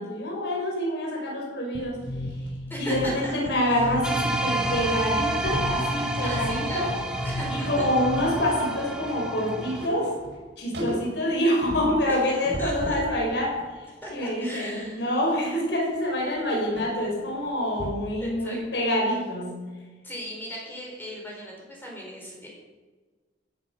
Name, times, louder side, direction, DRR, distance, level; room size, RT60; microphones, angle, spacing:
voice 1, 0.0-2.0 2.8-6.9 7.5-10.1 10.6-13.6 14.1-19.6, equal, 85° left, -1 dB, 4.7 m, -26 dB
sound 1, 1.7-8.6, left 1 dB, 55° left, 3.6 m, -35 dB
sound 2, 2.0-4.2 4.4-4.7 5.0-5.8 6.3-7.0 7.3-13.1 13.6-18.2 18.6-18.7, equal, 85° right, 6.3 m, -39 dB
voice 2, 2.7-3.9 6.2-7.8 12.1-12.3 12.6-13.0 14.0-15.0 18.2-18.6 20.0-22.5, equal, 10° left, -2 dB, 4.5 m, -37 dB
sound 3, 4.0-9.9, right 1 dB, 5° right, 2.2 m, -29 dB
16.0 x 12.0 x 6.7 m, 1.3 s
head